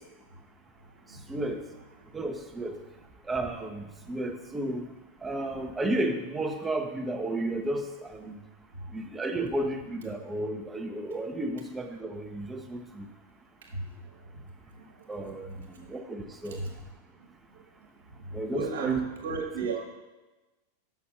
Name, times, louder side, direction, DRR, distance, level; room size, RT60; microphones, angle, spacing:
voice 1, 1.3-1.6 2.1-2.7 3.3-4.9 5.2-8.4 8.9-13.1 15.1-16.6 18.3-19.0 19.4-19.5, right 1 dB, 15° right, 5 dB, 0.8 m, -33 dB
voice 2, 18.5-19.9, right 6 dB, 60° right, 1 dB, 1.3 m, -32 dB
6.1 x 5.9 x 5.8 m, 1.1 s
figure-of-eight pair, 90°, 0 cm